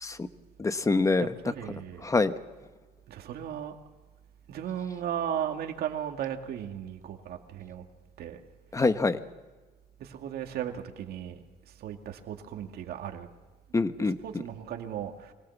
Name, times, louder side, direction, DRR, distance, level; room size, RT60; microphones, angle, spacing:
voice 1, 0.6-1.3 2.0-2.3 8.7-9.2 13.7-14.2, left 3 dB, 20° left, 11 dB, 1.1 m, -25 dB
voice 2, 1.4-2.1 3.1-3.8 4.5-7.8 8.2-8.4 10.0-13.3 14.0-15.3, right 9 dB, 65° right, 4 dB, 2.3 m, -36 dB
24.5 x 18.0 x 7.3 m, 1.3 s
cardioid pair, 110°, 17 cm